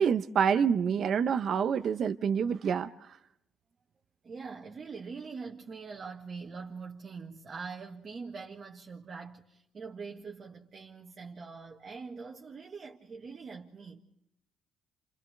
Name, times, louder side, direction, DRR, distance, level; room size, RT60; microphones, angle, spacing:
voice 1, 0.0-2.9, right 7 dB, 55° right, 0.8 m, -27 dB
voice 2, 4.2-14.0, right 5 dB, 40° right, 1.6 m, -43 dB
28.5 x 27.5 x 3.4 m
cardioid pair, 110°, 0 cm